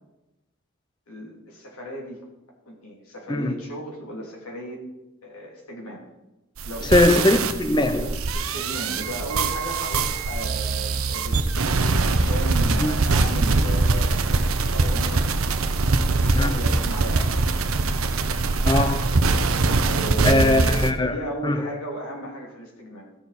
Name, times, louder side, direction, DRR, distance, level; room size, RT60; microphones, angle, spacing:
voice 1, 1.1-2.2 2.7-4.8 5.2-6.1 6.6-7.2 8.3-11.5 12.1-15.3 15.8-17.4 19.9-23.1, equal, 85° left, 2.8 m, -35 dB
sound 1, 6.6-20.9, right 3 dB, 75° right, 0.8 m, -22 dB
voice 2, 6.9-8.2 12.8-12.9 16.3-16.6 18.6-19.2 20.2-21.1 21.4-21.7, left 2 dB, 20° left, 0.6 m, -21 dB
15.5 x 6.8 x 4.1 m
head